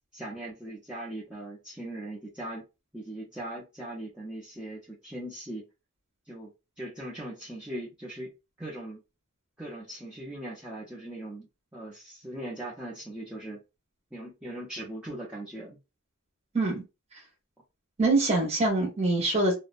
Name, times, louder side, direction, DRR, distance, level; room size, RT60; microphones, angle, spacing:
voice 1, 0.1-2.7 2.9-5.7 6.3-6.5 6.8-8.3 8.6-9.0 9.6-13.6 14.1-15.8, right 1 dB, 5° right, 0.5 m, -39 dB
voice 2, 18.0-19.5, right 2 dB, 30° right, 0.8 m, -24 dB
2.6 x 2.1 x 2.4 m
head